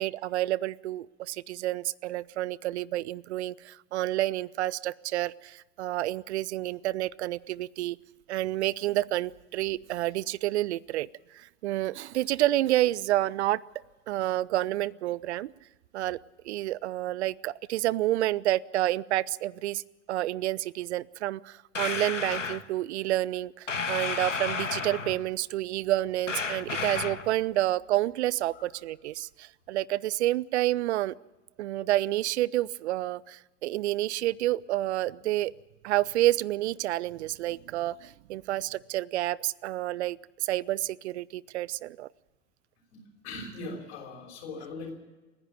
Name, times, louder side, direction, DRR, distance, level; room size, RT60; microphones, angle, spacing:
voice 1, 0.0-8.0 8.3-11.1 11.3-13.6 14.1-15.5 15.9-16.2 16.4-19.8 20.1-31.1 31.6-35.5 35.8-42.1, right 15 dB, 65° right, 25 dB, 0.6 m, -29 dB
sound 1, 21.7-22.6 23.7-25.3 26.3-27.3, left 5 dB, 90° left, 0.8 m, -32 dB
voice 2, 43.2-44.9, left 3 dB, 65° left, -1 dB, 5.8 m, -39 dB
29.5 x 10.5 x 8.8 m, 1.1 s
figure-of-eight pair, 70°, 36 cm